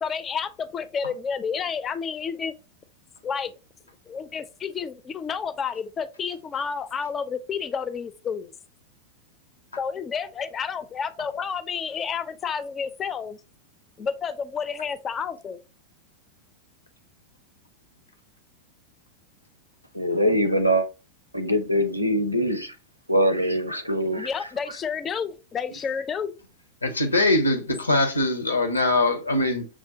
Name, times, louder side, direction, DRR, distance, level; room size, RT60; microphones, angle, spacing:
voice 1, 0.0-2.5 3.2-3.5 4.1-8.5 9.8-13.4 14.0-15.6 24.2-26.3, left 6 dB, 25° left, 0.4 m, -30 dB
voice 2, 19.9-20.9 21.3-22.7 23.1-24.3, equal, 90° right, 0.5 m, -23 dB
voice 3, 26.8-29.7, left 2 dB, 80° left, 0.7 m, -22 dB
5.9 x 2.1 x 2.7 m
figure-of-eight pair, 90°, 0 cm